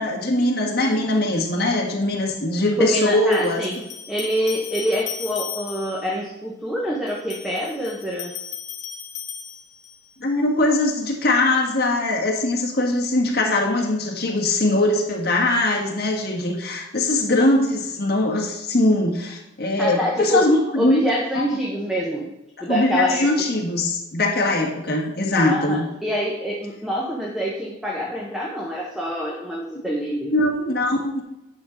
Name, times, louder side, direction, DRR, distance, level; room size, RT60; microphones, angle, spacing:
voice 1, 0.0-3.6 10.2-21.0 21.3-21.5 22.7-25.9 30.3-31.2, left 2 dB, 55° left, -1 dB, 1.6 m, -21 dB
voice 2, 2.8-3.8 4.1-8.3 19.8-20.5 20.8-22.4 22.6-23.3 25.3-30.4, equal, ahead, -3 dB, 0.9 m, -26 dB
sound 1, 3.3-6.1 7.1-10.1, left 8 dB, 40° left, 0.6 m, -36 dB
9.7 x 3.9 x 6.2 m, 0.95 s
head